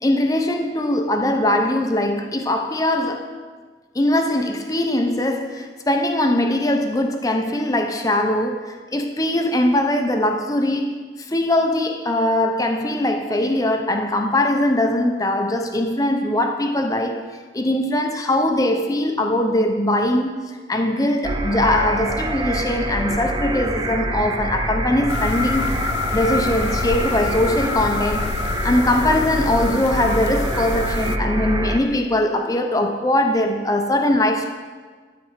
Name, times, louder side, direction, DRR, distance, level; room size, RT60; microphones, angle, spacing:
voice 1, 0.0-3.3 3.9-10.9 11.2-17.2 17.5-25.7 26.1-28.4 28.6-34.5, left 1 dB, 20° left, 0.7 m, -21 dB
sound 1, 21.2-31.8, right 1 dB, 25° right, 0.6 m, -26 dB
sound 2, 25.1-31.2, left 6 dB, 75° left, 0.4 m, -28 dB
13.0 x 4.4 x 7.3 m
head